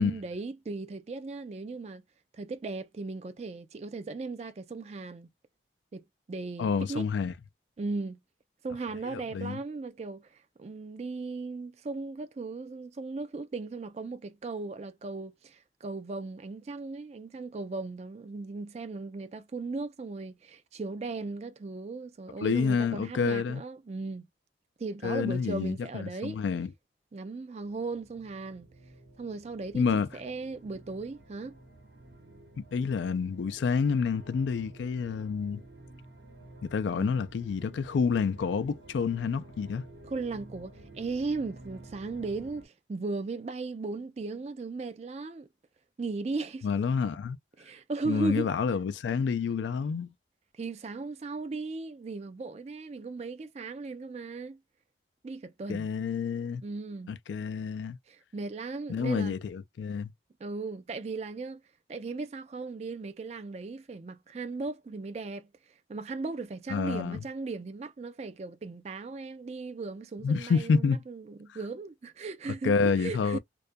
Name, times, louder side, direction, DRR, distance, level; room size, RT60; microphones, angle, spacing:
voice 1, 0.0-2.0 2.3-5.3 5.9-7.1 7.8-8.2 8.6-24.3 24.8-26.4 27.1-28.7 29.2-29.8 30.1-31.6 36.9-37.1 40.1-45.5 46.0-46.7 47.6-48.5 50.6-54.6 55.2-55.9 56.6-57.1 58.1-59.4 60.4-61.6 61.9-65.5 65.9-73.4, right 3 dB, 35° right, 0.3 m, -37 dB
voice 2, 6.6-7.3 9.1-9.6 22.4-23.6 25.0-26.7 29.7-30.1 32.6-35.6 36.6-39.8 46.6-47.4 48.1-50.1 55.7-56.6 57.1-58.0 58.9-60.1 66.7-67.2 70.2-71.0 72.6-73.4, left 5 dB, 90° left, 0.3 m, -28 dB
sound 1, 27.6-42.6, right 2 dB, 85° right, 0.9 m, -51 dB
2.3 x 2.1 x 2.5 m
head